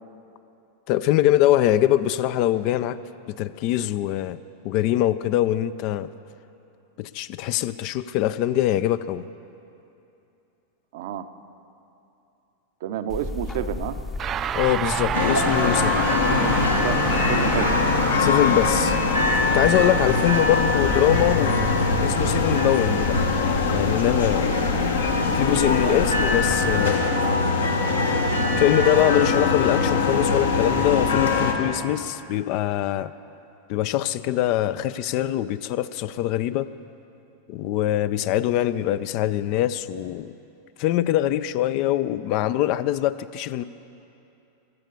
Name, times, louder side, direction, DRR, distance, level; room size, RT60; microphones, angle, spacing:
voice 1, 0.9-3.0 3.3-4.4 4.6-6.1 7.0-9.3 14.6-16.1 18.2-19.0 19.5-23.2 23.7-24.7 25.3-27.0 28.6-33.1 33.7-36.7 37.5-40.3 40.8-43.6, left 13 dB, 45° left, 15 dB, 0.4 m, -23 dB
voice 2, 10.9-11.3 12.8-14.0 16.3-16.6 16.8-17.0 17.3-17.7 24.8-24.9 25.3-26.1, right 10 dB, 55° right, 10 dB, 0.7 m, -30 dB
sound 1, 13.1-26.9, left 3 dB, 15° left, 0.7 m, -35 dB
sound 2, 14.2-23.7, right 9 dB, 30° right, 0.3 m, -31 dB
sound 3, 15.1-31.5, left 3 dB, 70° left, 1.3 m, -22 dB
20.5 x 8.1 x 7.0 m, 2.8 s
figure-of-eight pair, 90°, 0 cm